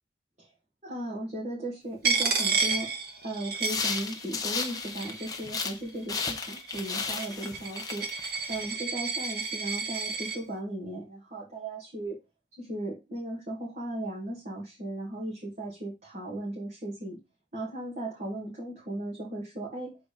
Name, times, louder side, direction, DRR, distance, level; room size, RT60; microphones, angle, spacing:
voice 1, 0.8-8.1 8.5-12.2 12.6-17.2 17.5-20.0, right 1 dB, 35° right, -4 dB, 1.9 m, -36 dB
Coin (dropping), 2.0-4.4 4.6-5.5 6.2-10.4, right 4 dB, 55° right, 1.3 m, -31 dB
sound 1, 3.6-5.8 6.1-8.7, left 5 dB, 20° left, 0.9 m, -34 dB
6.8 x 3.9 x 5.0 m, 0.26 s
head